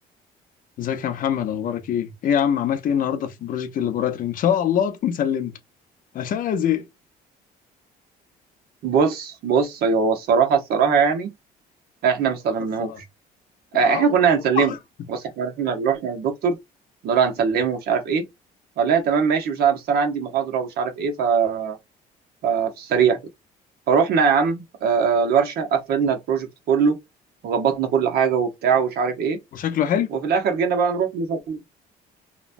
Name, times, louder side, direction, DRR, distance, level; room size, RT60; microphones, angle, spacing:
voice 1, 0.8-5.5 6.1-6.9 12.8-13.0 13.7-14.8 29.5-30.1, left 9 dB, 55° left, 0.6 m, -24 dB
voice 2, 8.8-11.3 12.0-13.0 13.7-14.7 15.1-16.6 17.0-18.2 18.8-21.8 22.4-23.2 23.9-27.0 27.4-29.4 30.1-31.6, right 6 dB, 70° right, 0.9 m, -21 dB
3.0 x 2.2 x 2.5 m
cardioid pair, 110°, 17 cm